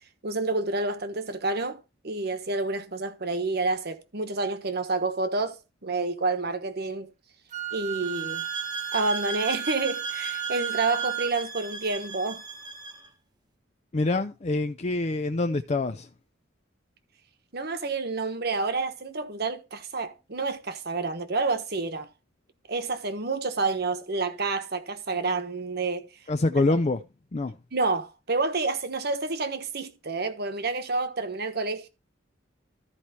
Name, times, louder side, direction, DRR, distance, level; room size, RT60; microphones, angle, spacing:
voice 1, 0.2-7.1 7.7-8.4 8.9-12.4 17.5-22.1 22.7-26.1 27.7-31.9, right 3 dB, 55° right, 1.2 m, -29 dB
Wind instrument woodwind instrument, 7.5-11.4, right 13 dB, 40° right, 0.5 m, -34 dB
sound 1, 8.0-13.1, right 3 dB, 20° right, 1.0 m, -37 dB
voice 2, 13.9-16.1 26.3-27.0 27.3-27.5, left 2 dB, 35° left, 0.5 m, -25 dB
13.5 x 4.7 x 4.2 m
head